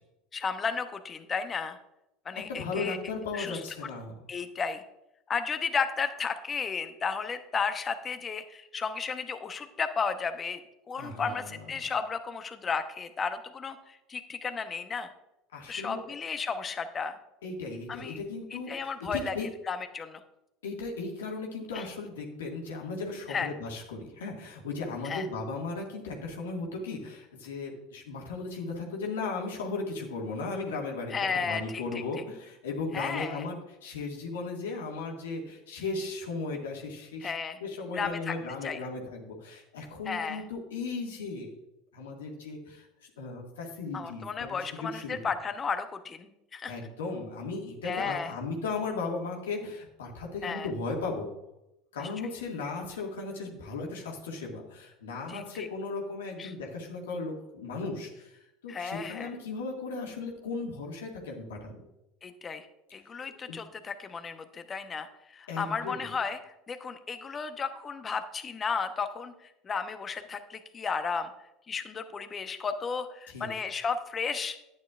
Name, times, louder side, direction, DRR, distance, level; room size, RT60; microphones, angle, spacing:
voice 1, 0.3-1.8 2.2-3.0 3.3-3.6 4.3-4.8 5.3-10.6 10.9-15.1 15.7-17.2 17.9-18.2 18.7-19.3 19.7-20.2 21.7-21.8 23.3-23.5 25.0-25.2 31.1-31.8 32.9-33.4 37.2-37.6 37.9-38.3 38.6-38.8 40.1-40.4 43.9-46.7 47.8-48.3 50.4-50.7 52.0-52.1 55.3-55.7 56.4-56.5 58.7-59.3 62.2-71.3 71.7-74.6, left 5 dB, 30° left, 9 dB, 1.0 m, -33 dB
voice 2, 2.5-4.2 11.0-11.9 15.5-16.0 17.4-19.5 20.6-37.3 37.6-41.6 41.9-45.2 46.7-51.3 51.9-61.8 63.5-63.6 65.5-66.0 73.3-73.5, left 3 dB, 80° left, 0 dB, 1.9 m, -36 dB
11.0 x 9.5 x 2.5 m, 0.88 s
hypercardioid pair, 75°, 0 cm